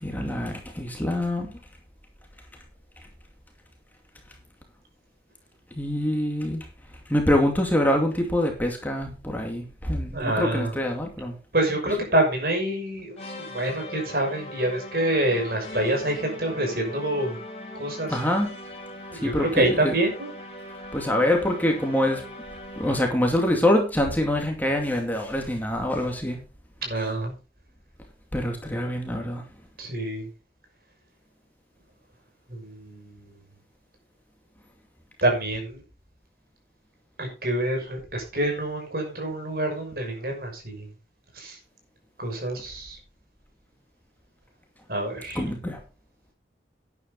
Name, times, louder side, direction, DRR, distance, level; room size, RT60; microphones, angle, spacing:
voice 1, 0.0-1.5 5.8-6.6 7.1-11.3 18.1-18.5 19.2-19.5 19.8-19.9 20.9-22.2 22.8-26.4 28.3-29.4 45.4-45.8, left 1 dB, 10° left, 2 dB, 2.4 m, -25 dB
voice 2, 10.1-10.7 11.5-17.4 17.8-18.2 19.1-20.3 26.8-27.3 29.8-30.3 32.5-33.3 35.2-35.8 37.2-40.9 41.3-41.6 42.2-43.0 44.9-45.4, right 1 dB, 55° right, 2 dB, 6.2 m, -26 dB
sound 1, 13.1-23.3, left 1 dB, 35° left, 5.0 m, -40 dB
12.5 x 10.5 x 3.9 m, 0.33 s
head